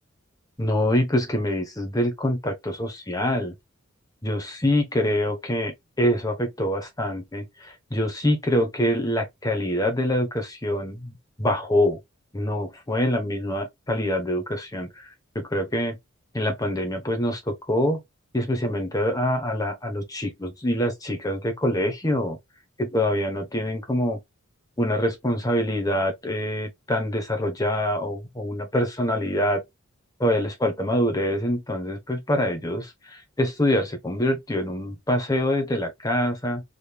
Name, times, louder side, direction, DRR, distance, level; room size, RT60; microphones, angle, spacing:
voice 1, 0.6-3.5 4.2-12.0 12.3-15.1 15.3-16.0 16.3-18.0 18.3-22.4 22.8-24.2 24.8-29.6 30.2-36.6, left 1 dB, 15° left, 1.0 m, -25 dB
3.9 x 3.4 x 2.3 m
head